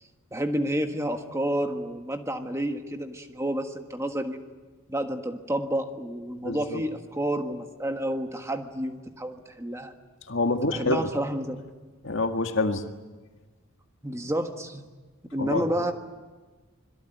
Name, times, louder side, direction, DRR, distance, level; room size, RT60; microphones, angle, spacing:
voice 1, 0.3-4.4 4.9-9.9 10.6-11.6 14.0-14.8 15.3-15.9, right 1 dB, 15° right, 5 dB, 1.5 m, -30 dB
voice 2, 6.4-6.8 10.3-11.1 12.0-12.8 15.4-15.7, left 2 dB, 60° left, 5 dB, 1.9 m, -26 dB
26.0 x 22.5 x 9.2 m, 1.3 s
head